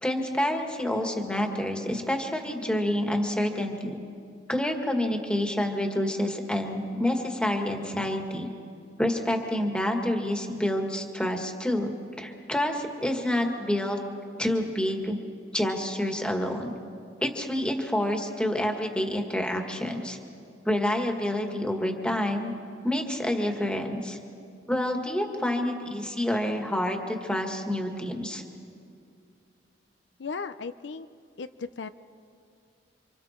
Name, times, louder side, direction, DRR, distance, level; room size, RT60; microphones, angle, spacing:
voice 1, 0.0-4.0 4.5-8.5 9.0-14.0 14.4-15.2 15.5-16.8 17.2-20.2 20.7-22.5 22.8-24.2 24.7-28.4, left 1 dB, 5° left, 3 dB, 1.8 m, -28 dB
voice 2, 30.2-31.1 31.4-31.9, left 5 dB, 75° left, 11 dB, 0.5 m, -36 dB
29.0 x 26.0 x 4.5 m, 2.4 s
head